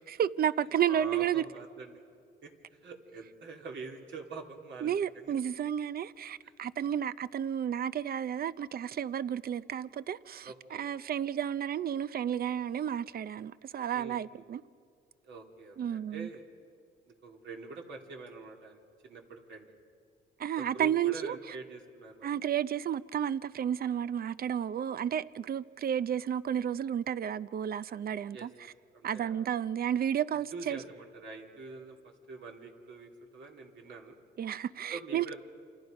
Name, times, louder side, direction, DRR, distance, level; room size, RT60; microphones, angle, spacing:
voice 1, 0.2-1.4 4.8-14.6 15.8-16.3 20.4-21.4 22.2-28.5 29.0-30.8 34.4-35.3, right 9 dB, 50° right, 0.6 m, -32 dB
voice 2, 0.9-2.0 2.4-2.5 2.8-4.9 5.2-5.3 10.4-10.8 13.9-14.4 15.2-16.4 17.2-19.7 20.6-22.3 28.3-28.5 28.9-29.5 30.5-32.0 32.3-34.2 34.9-35.3, right 3 dB, 70° right, 3.3 m, -45 dB
28.5 x 27.5 x 5.3 m
cardioid pair, 90°, 20 cm